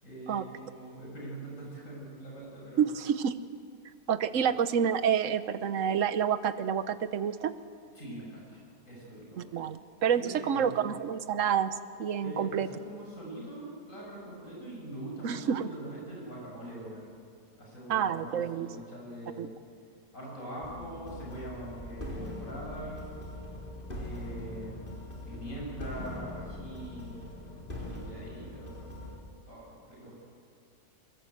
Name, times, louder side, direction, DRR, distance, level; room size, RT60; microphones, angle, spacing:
voice 1, 0.0-2.9 4.3-4.5 7.9-8.6 8.8-9.4 10.2-10.9 12.2-17.1 17.6-19.5 20.1-23.2 23.9-25.0 25.3-27.2 27.8-28.9 29.4-30.2, right 1 dB, 55° left, -4 dB, 8.0 m, -43 dB
voice 2, 2.8-3.4 4.1-7.5 9.4-12.7 15.2-15.7 17.9-18.7 19.4-19.5, right 8 dB, 55° right, 12 dB, 1.2 m, -28 dB
sound 1, 20.6-29.2, left 1 dB, 30° left, 4.1 m, -41 dB
23.5 x 23.0 x 8.1 m, 2.3 s
omnidirectional pair, 1.7 m